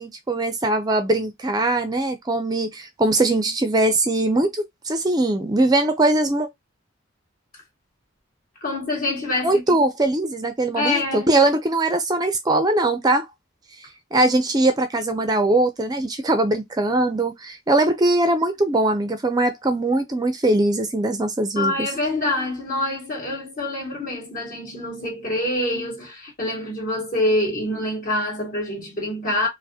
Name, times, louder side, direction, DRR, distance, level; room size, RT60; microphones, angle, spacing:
voice 1, 0.0-6.5 9.4-13.3 14.1-21.9, right 2 dB, 20° right, 0.4 m, -21 dB
voice 2, 8.6-9.8 10.7-11.3 21.5-29.5, left 1 dB, 45° left, 1.7 m, -26 dB
4.7 x 2.1 x 2.7 m
head